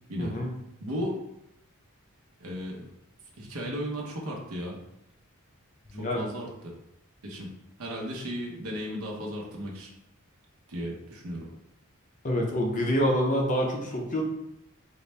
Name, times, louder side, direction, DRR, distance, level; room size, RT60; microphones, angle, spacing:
voice 1, 0.2-0.5 5.9-6.3 12.2-14.2, equal, 35° left, 0 dB, 0.6 m, -26 dB
voice 2, 0.8-1.1 2.4-2.9 3.4-4.8 5.9-6.7 7.2-7.5 7.8-9.9 10.7-11.5, equal, 75° right, -2 dB, 0.9 m, -35 dB
4.1 x 2.1 x 3.2 m, 0.82 s
head